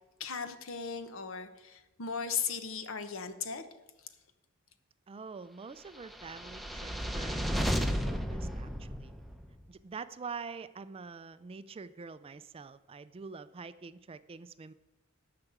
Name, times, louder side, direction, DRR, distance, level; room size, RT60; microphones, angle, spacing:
voice 1, 0.2-3.6, left 6 dB, 70° left, 10 dB, 1.0 m, -37 dB
voice 2, 5.1-9.2 9.7-14.7, right 5 dB, 25° right, 14 dB, 0.4 m, -46 dB
sound 1, 6.1-9.5, equal, ahead, 0.7 m, -33 dB
10.5 x 5.9 x 8.0 m, 1.0 s
head